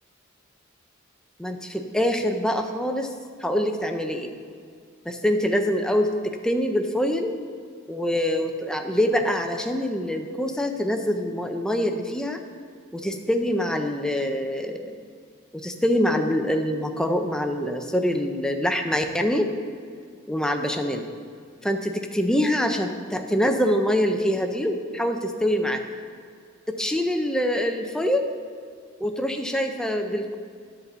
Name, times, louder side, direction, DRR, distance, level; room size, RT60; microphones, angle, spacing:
voice 1, 1.4-3.1 3.4-4.3 5.1-7.4 7.9-12.4 12.9-14.9 15.5-19.5 20.3-21.1 21.6-25.8 26.7-28.3 29.0-30.4, equal, 5° left, 5 dB, 0.6 m, -25 dB
10.5 x 4.1 x 6.7 m, 2.2 s
head